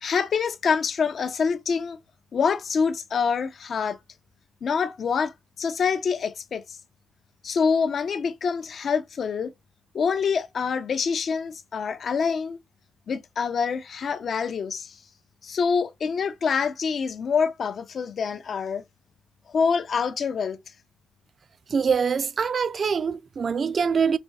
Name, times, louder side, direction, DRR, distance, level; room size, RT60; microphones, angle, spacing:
voice 1, 0.0-2.0 2.3-4.0 4.6-6.8 7.4-9.5 9.9-12.6 13.1-15.0 15.4-18.8 19.5-20.6, left 6 dB, 60° left, 0.5 m, -26 dB
voice 2, 21.7-24.2, right 6 dB, 50° right, 0.3 m, -24 dB
4.3 x 2.7 x 2.2 m
cardioid pair, 95°, 0 cm